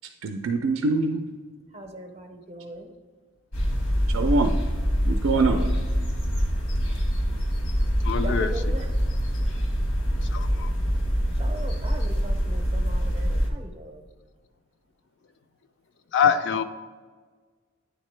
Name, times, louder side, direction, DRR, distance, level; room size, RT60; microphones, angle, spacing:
voice 1, 0.2-1.2 4.1-4.5 5.1-5.7, right 3 dB, 75° right, 6 dB, 0.4 m, -23 dB
voice 2, 1.7-2.9 5.3-5.7 8.2-8.9 11.4-14.0, right 1 dB, 30° right, 5 dB, 0.6 m, -39 dB
sound 1, 3.5-13.5, equal, 85° left, 1.2 m, -25 dB
voice 3, 8.0-8.6 10.3-10.7 16.1-16.6, left 7 dB, 55° left, 9 dB, 0.4 m, -24 dB
9.3 x 3.7 x 3.2 m, 1.5 s
head